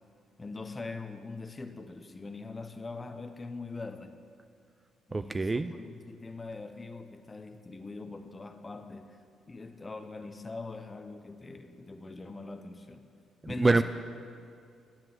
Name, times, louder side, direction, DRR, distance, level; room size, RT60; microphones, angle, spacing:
voice 1, 0.4-4.2 5.1-9.2 9.5-13.1 13.5-13.8, left 3 dB, 25° left, 8 dB, 0.8 m, -42 dB
voice 2, 5.1-5.7 13.6-13.8, right 3 dB, 25° right, 11 dB, 0.3 m, -25 dB
10.5 x 7.6 x 7.5 m, 2.4 s
cardioid pair, 90°, 0 cm